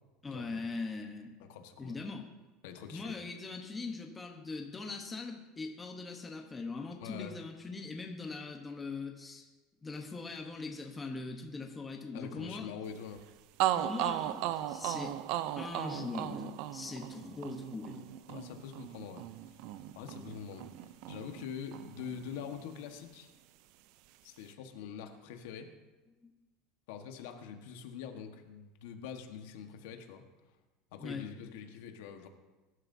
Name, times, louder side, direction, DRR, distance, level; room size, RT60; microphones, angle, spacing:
voice 1, 0.2-1.4 1.8-2.3 2.9-9.5 9.8-12.7 13.8-14.4 14.7-15.2 15.6-18.1 26.2-26.3 31.0-31.3, left 3 dB, 10° left, 3 dB, 1.0 m, -41 dB
voice 2, 1.5-2.0 2.6-3.1 7.0-7.4 12.1-13.2 18.3-19.2 19.9-23.3 24.2-25.7 26.9-30.2 30.9-32.3, left 7 dB, 80° left, 5 dB, 1.3 m, -44 dB
sound 1, 13.2-13.3 13.6-21.5 21.7-22.9, right 13 dB, 55° right, 0.5 m, -36 dB
21.0 x 11.5 x 2.7 m, 1.1 s
cardioid pair, 165°, 0 cm